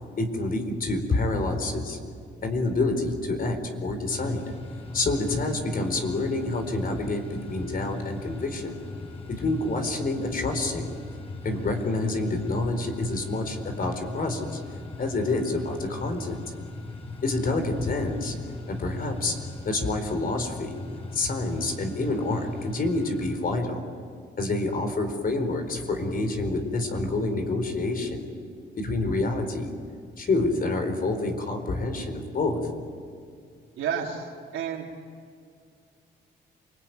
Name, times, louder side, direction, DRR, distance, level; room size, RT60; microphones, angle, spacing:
voice 1, 0.2-2.0 2.4-4.4 4.9-8.8 9.4-10.9 11.4-14.6 15.0-16.4 17.2-18.4 18.7-20.8 21.1-23.8 24.4-28.3 28.8-29.7 30.2-32.7, left 2 dB, 45° left, 6 dB, 4.4 m, -27 dB
sound 1, 4.1-23.4, left 3 dB, 30° left, 6.2 m, -40 dB
voice 2, 33.8-34.9, right 7 dB, 85° right, -2 dB, 3.5 m, -31 dB
28.5 x 20.5 x 9.4 m, 2.2 s
cardioid pair, 90°, 20 cm